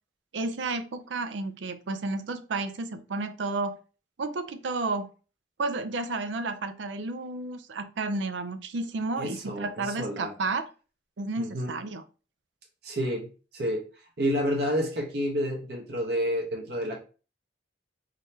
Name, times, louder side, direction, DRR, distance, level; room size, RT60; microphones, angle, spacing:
voice 1, 0.3-3.8 4.2-5.1 5.6-10.6 11.2-12.0, right 3 dB, 80° right, 10 dB, 0.5 m, -32 dB
voice 2, 9.2-10.3 11.4-11.7 12.8-13.3 13.5-13.9 14.2-17.0, equal, 60° right, 1 dB, 0.9 m, -29 dB
3.8 x 3.2 x 2.7 m, 0.35 s
head